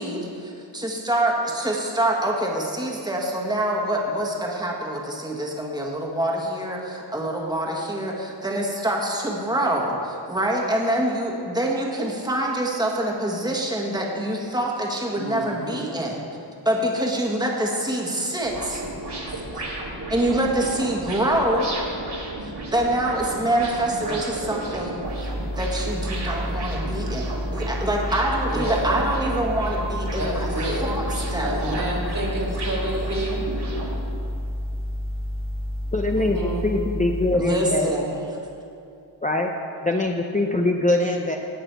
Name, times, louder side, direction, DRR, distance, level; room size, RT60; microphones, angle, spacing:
voice 1, 0.0-16.2 16.6-18.8 20.1-21.8 22.4-25.3 25.6-30.5 30.8-31.8 37.3-38.2, right 1 dB, 10° right, -2 dB, 1.4 m, -25 dB
voice 2, 15.1-16.0 19.0-19.4 24.0-24.9 28.4-29.0 30.2-30.9 31.4-33.4 35.8-36.7, right 1 dB, 45° right, -2 dB, 2.2 m, -30 dB
sound 1, 18.4-33.9, right 2 dB, 60° right, 2.0 m, -34 dB
sound 2, 25.0-37.4, left 1 dB, 30° right, 1.1 m, -30 dB
voice 3, 35.9-37.9 39.2-39.5 39.8-41.4, left 2 dB, 20° left, 1 dB, 0.5 m, -23 dB
17.5 x 6.1 x 4.5 m, 2.6 s
wide cardioid pair, 120°, 45 cm